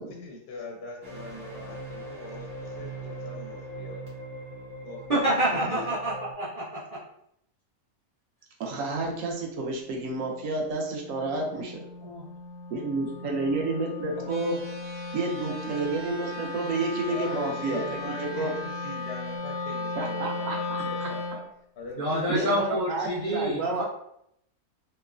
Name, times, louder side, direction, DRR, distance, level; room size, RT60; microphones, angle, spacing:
voice 1, 0.1-4.0 4.8-5.8 14.2-14.6 17.1-21.4 21.8-22.5, left 2 dB, 60° left, -1 dB, 0.6 m, -40 dB
sound 1, 1.0-6.3, right 1 dB, 30° right, 0.9 m, -40 dB
voice 2, 5.1-7.0 11.5-11.7 12.0-12.3 22.0-23.8, right 1 dB, 50° right, -8 dB, 0.4 m, -28 dB
voice 3, 8.6-11.8 12.7-14.5 15.1-18.5 19.9-21.1 22.3-23.8, right 3 dB, 70° right, 0 dB, 0.9 m, -30 dB
Wind instrument woodwind instrument, 9.9-21.5, left 2 dB, 85° left, 1.1 m, -36 dB
sound 2, 14.3-19.4, left 1 dB, 90° right, 1.3 m, -49 dB
3.0 x 2.0 x 2.4 m, 0.74 s
omnidirectional pair, 1.5 m